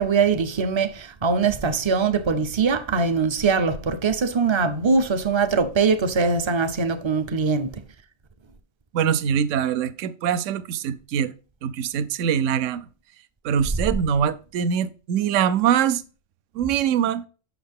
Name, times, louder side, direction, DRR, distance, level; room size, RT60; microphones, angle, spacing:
voice 1, 0.0-7.8, right 5 dB, 40° right, 0.4 m, -22 dB
voice 2, 8.9-11.3 11.6-12.8 13.4-16.0 16.6-17.2, right 8 dB, 70° right, 1.0 m, -23 dB
7.8 x 6.3 x 3.5 m
omnidirectional pair, 1.4 m